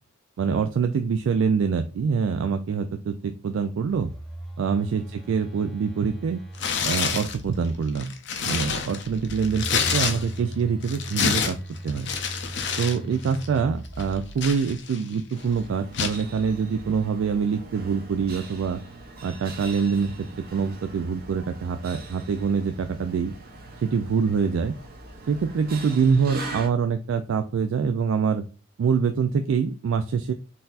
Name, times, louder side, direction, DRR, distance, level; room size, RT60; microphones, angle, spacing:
voice 1, 0.4-4.1 4.6-6.4 6.9-8.1 8.5-9.6 9.9-11.6 11.8-12.1 12.8-18.8 19.2-23.3 23.8-24.7 25.3-28.4 28.8-30.3, right 6 dB, 75° right, 7 dB, 0.3 m, -25 dB
Telephone, 3.8-7.8 9.0-14.7, right 1 dB, ahead, 0.6 m, -38 dB
Tearing, 6.5-7.4 7.9-10.5 10.8-13.0 13.2-13.5 14.0-15.1 15.9-16.2, left 6 dB, 60° left, 0.5 m, -28 dB
sound 1, 15.3-26.7, right 2 dB, 50° right, 0.8 m, -41 dB
3.9 x 2.7 x 2.4 m, 0.35 s
head